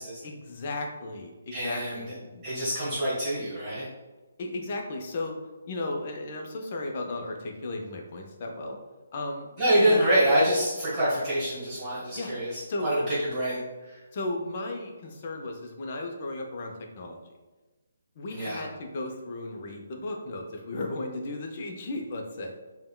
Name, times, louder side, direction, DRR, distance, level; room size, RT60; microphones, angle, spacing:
voice 1, 0.2-2.4 4.4-5.4 5.7-8.8 9.1-9.5 9.8-10.3 12.1-12.3 12.7-13.3 14.1-17.2 18.2-22.6, left 2 dB, 45° left, 2 dB, 0.4 m, -35 dB
voice 2, 1.5-2.0 2.4-3.9 9.6-13.6 13.9-14.0 18.3-18.6, right 1 dB, 25° right, -9 dB, 1.2 m, -26 dB
3.5 x 2.1 x 2.2 m, 1.2 s
figure-of-eight pair, 145°, 0 cm